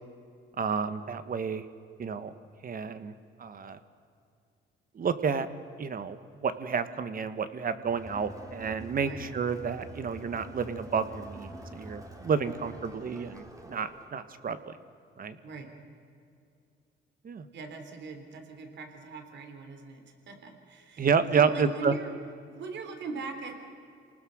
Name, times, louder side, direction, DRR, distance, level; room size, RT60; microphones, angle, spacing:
voice 1, 0.6-1.6 2.0-2.3 2.6-3.1 3.4-3.8 4.9-5.5 5.8-14.8 15.2-15.4 17.2-17.5 21.0-21.9, right 6 dB, 45° right, 11 dB, 1.4 m, -30 dB
Crowd, 7.8-14.1, right 1 dB, 15° right, 2.7 m, -46 dB
voice 2, 17.5-21.1 21.3-22.1 22.5-23.6, right 4 dB, 65° right, 5 dB, 3.4 m, -40 dB
28.0 x 19.5 x 6.4 m, 2.4 s
cardioid pair, 90°, 20 cm